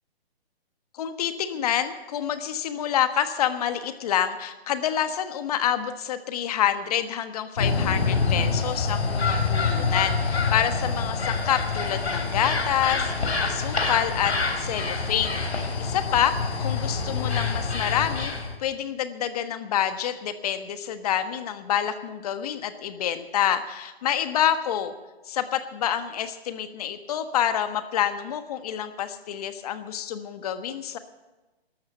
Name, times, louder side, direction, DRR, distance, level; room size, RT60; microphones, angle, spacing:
voice 1, 0.9-18.3 18.6-24.9 25.3-31.0, left 10 dB, 35° left, 10 dB, 1.3 m, -27 dB
sound 1, 7.6-18.6, left 4 dB, 85° left, 3.7 m, -26 dB
13.0 x 13.0 x 6.9 m, 1.1 s
hypercardioid pair, 150°, 32 cm